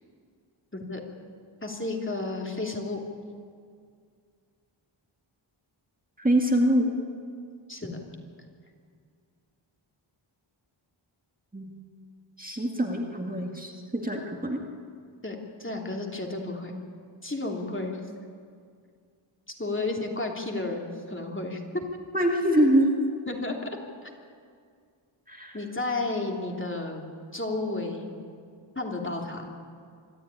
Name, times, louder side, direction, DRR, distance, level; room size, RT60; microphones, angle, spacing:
voice 1, 1.6-3.0 7.7-8.0 15.2-16.7 17.2-18.0 19.6-21.8 23.3-23.7 24.0-24.1 25.5-27.0 27.3-28.1 28.7-29.6, left 2 dB, 25° left, 1 dB, 2.9 m, -32 dB
voice 2, 6.2-6.9 11.5-11.8 12.4-14.6 22.1-22.9 25.3-25.6, right 1 dB, 15° right, 1 dB, 2.0 m, -24 dB
25.0 x 13.0 x 9.8 m, 2.2 s
wide cardioid pair, 90°, 50 cm